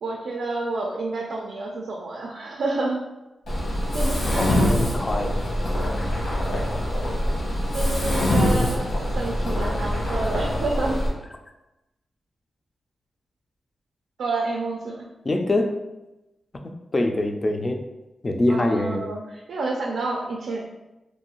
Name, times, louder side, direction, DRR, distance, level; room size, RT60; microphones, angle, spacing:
voice 1, 0.0-3.0 3.9-4.8 7.7-8.8 9.1-11.0 14.2-15.1 18.5-19.2 19.5-20.6, right 2 dB, 80° right, -1 dB, 0.3 m, -29 dB
Mechanisms, 3.5-11.1, left 1 dB, 75° left, 1.0 m, -24 dB
voice 2, 4.4-5.4 15.2-15.8 16.6-17.8 18.2-19.1, left 1 dB, 30° left, 5 dB, 0.3 m, -24 dB
2.6 x 2.3 x 2.9 m, 1.0 s
cardioid pair, 85°, 0 cm